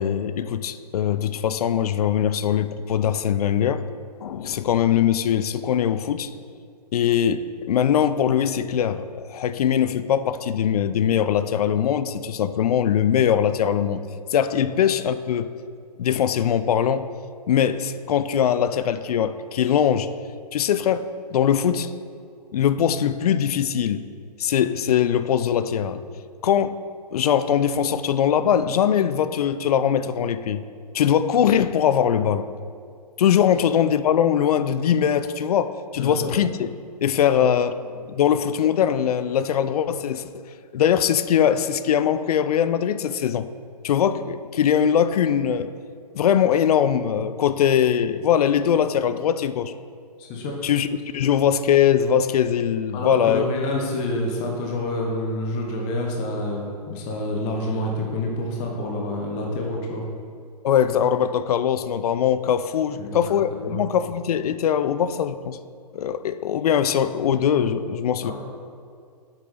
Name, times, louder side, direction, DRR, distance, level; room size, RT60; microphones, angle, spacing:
voice 1, 0.0-3.8 4.2-6.3 6.9-14.0 14.3-15.5 16.0-17.1 17.5-20.1 20.5-21.9 22.5-24.1 24.4-26.0 26.4-26.8 27.1-30.6 30.9-32.5 33.2-36.7 37.0-37.7 38.1-40.3 40.7-43.5 43.8-45.7 46.1-49.7 50.6-50.9 51.1-53.5 60.6-65.6 65.9-68.3, left 9 dB, 65° left, 12 dB, 0.4 m, -21 dB
voice 2, 36.0-36.3 37.3-37.5 50.2-50.5 52.9-60.0 63.0-63.8 68.2-68.3, left 1 dB, 30° left, 0 dB, 1.0 m, -28 dB
7.6 x 4.5 x 4.0 m, 2.3 s
hypercardioid pair, 130°, 21 cm